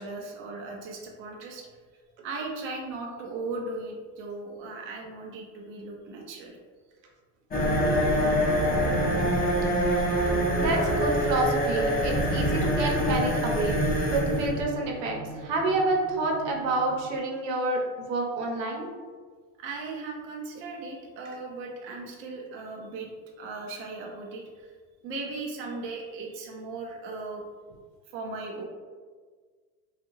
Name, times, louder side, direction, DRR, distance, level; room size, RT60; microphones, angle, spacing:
voice 1, 0.0-1.7 2.2-6.6 19.6-23.1 23.4-24.7 25.0-27.4 28.1-28.6, right 3 dB, 30° right, -1 dB, 0.4 m, -37 dB
sound 1, 7.5-17.1, equal, 20° left, 0.5 m, -26 dB
voice 2, 9.8-17.8 18.1-18.9, right 2 dB, 80° right, 0 dB, 0.8 m, -28 dB
2.5 x 2.3 x 3.0 m, 1.5 s
supercardioid pair, 115°, 48 cm